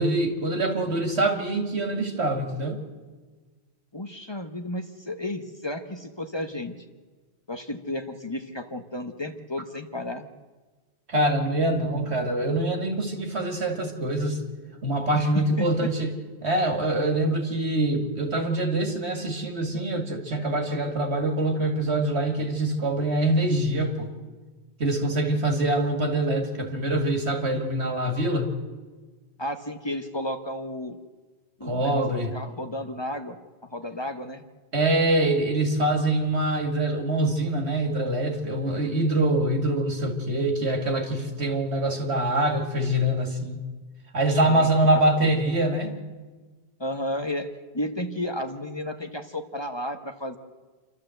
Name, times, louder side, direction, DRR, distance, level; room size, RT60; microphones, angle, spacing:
voice 1, 0.0-2.8 11.1-14.4 14.8-16.2 16.4-24.1 24.8-28.5 31.6-32.3 34.7-43.6 44.1-45.9, right 1 dB, 85° right, 4 dB, 2.5 m, -24 dB
voice 2, 3.9-6.8 7.5-10.3 15.1-15.7 29.4-31.0 31.6-32.0 32.3-33.4 33.7-34.4 44.5-44.7 45.2-45.3 46.8-50.4, left 1 dB, 25° left, 7 dB, 1.0 m, -32 dB
28.0 x 12.5 x 7.8 m, 1.3 s
omnidirectional pair, 1.1 m